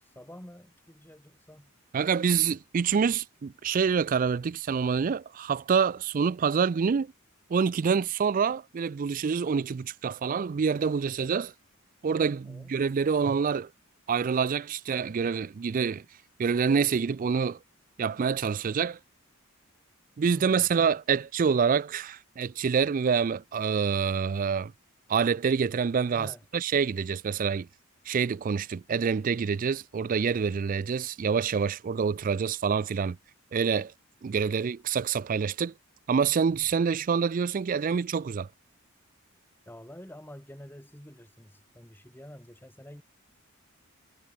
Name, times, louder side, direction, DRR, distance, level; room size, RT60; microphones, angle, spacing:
voice 1, 0.0-1.7 12.4-12.7 20.3-20.6 26.2-26.4 39.7-43.0, equal, 10° left, 3.0 m, -48 dB
voice 2, 1.9-7.1 7.5-11.5 12.0-13.7 14.1-16.0 16.4-17.6 18.0-19.0 20.2-24.7 25.1-27.7 28.1-33.2 33.5-33.9 34.2-35.7 36.1-38.5, right 6 dB, 40° right, 0.3 m, -26 dB
head